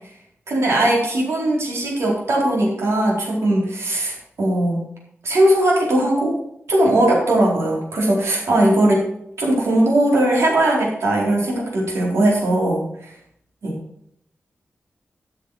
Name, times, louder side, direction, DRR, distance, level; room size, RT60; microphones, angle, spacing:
voice 1, 0.5-4.8 5.2-6.4 6.7-9.1 9.4-13.1 13.6-13.8, right 1 dB, 85° right, -3 dB, 4.2 m, -19 dB
13.0 x 6.8 x 4.8 m, 0.72 s
wide cardioid pair, 170°, 4 cm